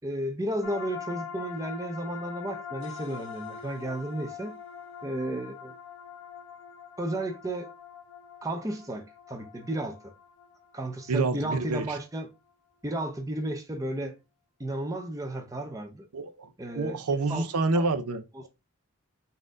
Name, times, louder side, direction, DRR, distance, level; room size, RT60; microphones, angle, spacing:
voice 1, 0.0-4.5 5.0-5.7 7.0-7.7 8.4-10.0 10.7-12.3 12.8-14.2 14.6-16.1 16.6-17.0 17.3-17.4 17.7-17.8 18.3-18.5, right 1 dB, 15° right, 0.5 m, -33 dB
sound 1, 0.6-12.0, left 6 dB, 60° left, 0.6 m, -43 dB
voice 2, 11.1-12.0 16.1-16.5 16.8-18.5, right 3 dB, 85° right, 0.5 m, -28 dB
4.1 x 2.6 x 3.7 m
head